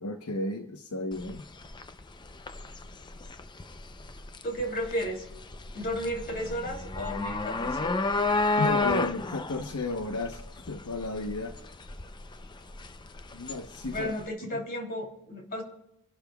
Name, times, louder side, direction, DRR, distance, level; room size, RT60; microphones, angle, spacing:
voice 1, 0.0-1.4 8.6-11.6 13.3-14.1 14.4-14.6, left 2 dB, 75° left, 5 dB, 0.9 m, -33 dB
sound 1, 1.1-14.3, left 3 dB, 20° left, 0.5 m, -32 dB
voice 2, 4.4-5.3 5.7-8.1 13.9-15.6, equal, 40° left, 1 dB, 3.0 m, -33 dB
27.5 x 12.0 x 2.3 m, 0.81 s
head